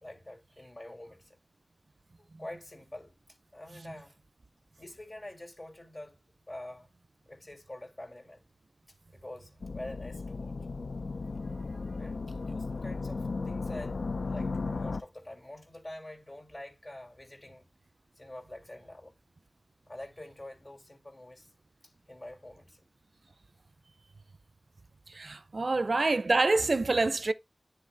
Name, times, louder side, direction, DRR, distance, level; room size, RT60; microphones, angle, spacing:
voice 1, 0.0-1.4 2.4-3.1 3.5-4.2 4.8-6.2 6.5-6.9 7.3-8.4 9.1-10.6 12.0-17.7 18.2-19.1 19.9-21.5 21.8-22.8, left 1 dB, 40° left, 2.2 m, -46 dB
sound 1, 9.6-15.0, left 3 dB, 85° left, 0.4 m, -35 dB
voice 2, 25.1-27.3, right 3 dB, 60° right, 0.4 m, -27 dB
9.9 x 3.7 x 3.3 m
wide cardioid pair, 70°, 0 cm